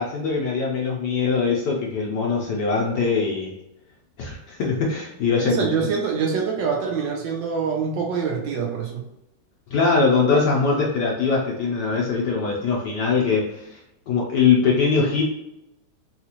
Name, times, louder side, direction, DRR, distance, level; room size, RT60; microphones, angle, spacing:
voice 1, 0.0-3.5 4.2-5.7 9.7-13.8 14.1-15.2, left 5 dB, 70° left, -3 dB, 1.0 m, -22 dB
voice 2, 5.4-9.1, right 6 dB, 70° right, 0 dB, 1.2 m, -25 dB
4.1 x 2.4 x 2.8 m, 0.86 s
omnidirectional pair, 2.4 m